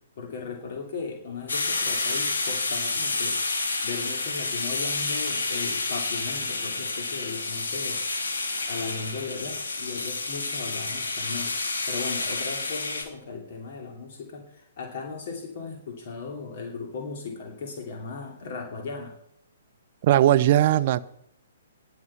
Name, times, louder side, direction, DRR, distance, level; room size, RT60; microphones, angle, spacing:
voice 1, 0.2-3.4 3.8-8.0 8.7-19.1, left 4 dB, 45° left, 2.8 m, -37 dB
sound 1, 1.5-13.0, left 3 dB, 65° left, 2.7 m, -29 dB
voice 2, 20.0-21.0, right 13 dB, 40° right, 0.6 m, -19 dB
20.5 x 6.8 x 5.8 m
figure-of-eight pair, 125°, 0 cm